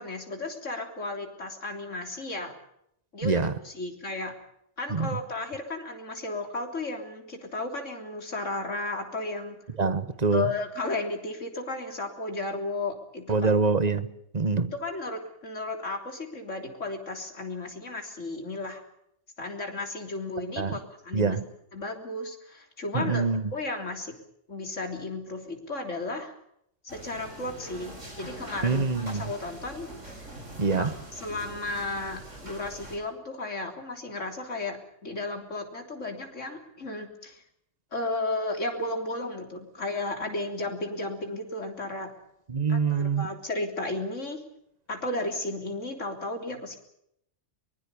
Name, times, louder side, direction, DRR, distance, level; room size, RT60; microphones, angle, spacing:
voice 1, 0.0-2.5 3.1-4.3 4.8-9.6 10.3-13.5 14.8-18.8 19.4-21.4 21.7-23.3 23.5-24.1 24.5-26.3 26.8-30.3 30.8-30.9 31.2-34.8 35.0-37.4 37.9-42.1 42.7-44.4 44.9-46.8, left 2 dB, 80° left, 3.8 m, -34 dB
voice 2, 3.2-3.6 4.9-5.2 9.8-10.5 13.3-14.1 14.3-14.7 20.6-20.8 21.1-21.4 22.9-23.5 28.6-29.3 30.6-30.9 42.5-43.3, right 4 dB, 35° right, 1.3 m, -25 dB
sound 1, 26.9-33.0, right 1 dB, 80° right, 6.1 m, -43 dB
23.5 x 21.0 x 7.0 m
omnidirectional pair, 1.3 m